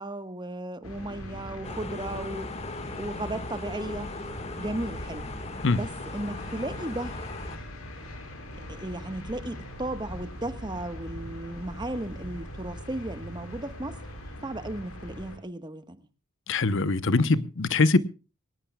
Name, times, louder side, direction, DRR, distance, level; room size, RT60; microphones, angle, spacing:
voice 1, 0.0-2.5 3.0-4.1 4.6-5.3 5.7-7.1 8.7-14.0 14.4-16.0, right 1 dB, 20° right, 1.3 m, -35 dB
sound 1, 0.8-15.4, equal, 75° left, 5.5 m, -41 dB
sound 2, 1.6-7.6, left 2 dB, 30° left, 1.6 m, -38 dB
voice 2, 16.5-18.0, left 3 dB, 55° left, 0.8 m, -22 dB
23.0 x 18.5 x 2.3 m
head